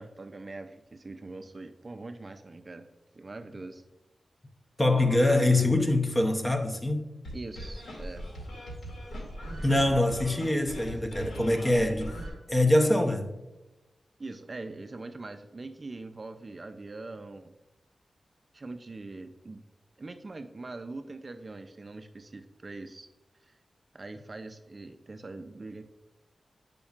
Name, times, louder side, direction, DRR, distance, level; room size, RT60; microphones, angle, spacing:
voice 1, 0.0-2.9 3.1-3.8 7.3-8.3 14.2-17.5 18.5-19.6 20.0-23.1 23.4-23.6 23.9-25.8, right 3 dB, 35° right, 0.3 m, -42 dB
voice 2, 4.8-7.0 9.6-12.2 12.5-13.3, left 1 dB, 15° left, 0.6 m, -24 dB
sound 1, 7.2-12.3, equal, 80° left, 2.0 m, -39 dB
8.4 x 5.1 x 2.4 m
wide cardioid pair, 115°, 0 cm